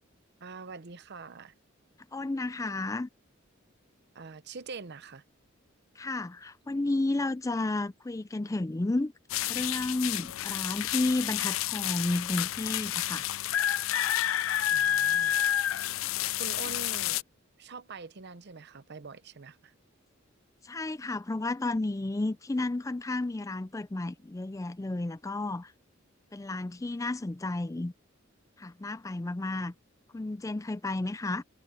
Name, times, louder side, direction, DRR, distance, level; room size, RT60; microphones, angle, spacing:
voice 1, 0.4-1.5 4.1-5.2 14.7-15.4 16.4-17.2 17.6-19.7, right 4 dB, 55° right, 0.8 m, -44 dB
voice 2, 2.1-3.1 6.0-9.1 9.5-13.3 20.6-25.7 26.3-27.9 28.6-29.7 30.1-31.4, left 2 dB, 15° left, 0.4 m, -32 dB
sound 1, 9.3-17.2, left 12 dB, 75° left, 0.4 m, -29 dB
head